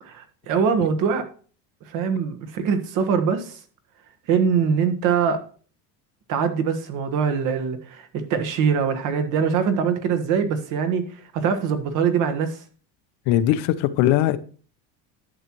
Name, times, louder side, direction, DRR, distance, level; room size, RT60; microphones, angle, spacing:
voice 1, 0.0-1.3 1.9-3.6 4.3-5.4 6.3-12.6, right 6 dB, 55° right, 1.4 m, -23 dB
voice 2, 13.3-14.4, left 13 dB, 85° left, 0.8 m, -20 dB
11.0 x 7.4 x 3.0 m
cardioid pair, 175°, 38 cm